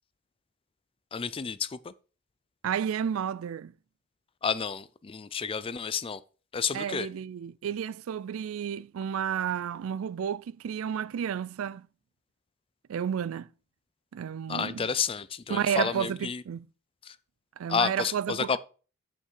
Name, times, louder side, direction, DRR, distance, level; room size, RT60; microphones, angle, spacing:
voice 1, 1.1-1.9 4.4-6.2 6.5-7.1 14.5-16.4 17.1-17.2 17.7-18.6, left 6 dB, 25° left, 0.4 m, -30 dB
voice 2, 2.6-3.7 6.7-11.9 12.9-13.5 14.1-14.9 15.5-16.7 17.6-18.6, right 8 dB, 65° right, 0.3 m, -31 dB
8.5 x 5.8 x 4.6 m
head